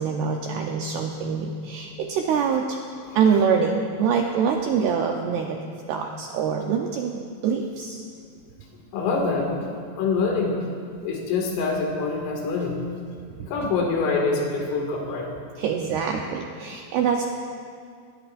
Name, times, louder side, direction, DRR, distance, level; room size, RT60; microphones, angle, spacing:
voice 1, 0.0-2.8 3.1-5.6 5.9-8.0 15.6-17.2, right 6 dB, 85° right, 1 dB, 2.3 m, -24 dB
voice 2, 8.9-9.5 10.0-10.6 11.0-12.8 13.4-15.3, left 4 dB, 85° left, 0 dB, 4.7 m, -25 dB
23.0 x 20.5 x 2.6 m, 2.2 s
omnidirectional pair, 5.7 m